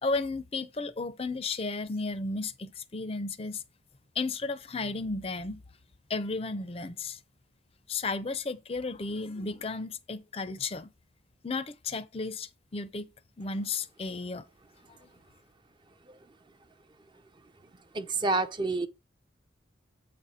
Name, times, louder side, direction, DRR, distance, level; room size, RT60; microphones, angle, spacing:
voice 1, 0.0-3.6 4.2-5.6 6.1-7.2 7.9-10.9 11.4-13.1 13.4-14.4 15.0-15.1, left 3 dB, 30° left, 0.5 m, -33 dB
voice 2, 17.9-18.9, right 3 dB, 25° right, 0.4 m, -28 dB
7.9 x 4.1 x 5.0 m
head